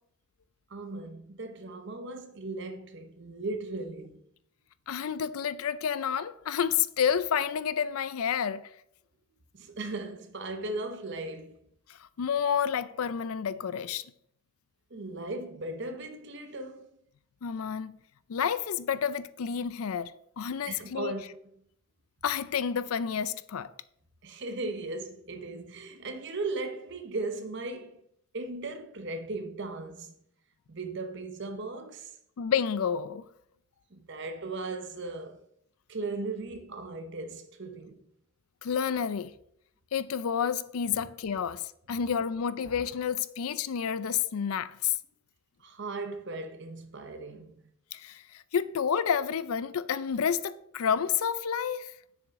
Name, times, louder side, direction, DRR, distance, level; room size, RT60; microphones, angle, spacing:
voice 1, 0.7-4.2 9.5-11.6 14.9-16.9 20.6-21.4 24.2-28.0 28.3-30.1 30.7-32.1 33.9-35.4 35.9-38.1 40.9-41.0 45.6-47.7, right 2 dB, 55° right, 0.9 m, -37 dB
voice 2, 4.9-8.7 12.0-14.0 17.4-18.0 18.3-21.1 22.2-23.7 32.4-33.2 38.6-39.3 39.9-44.9 47.9-51.9, left 7 dB, 80° left, 0.4 m, -30 dB
6.9 x 6.2 x 3.6 m
head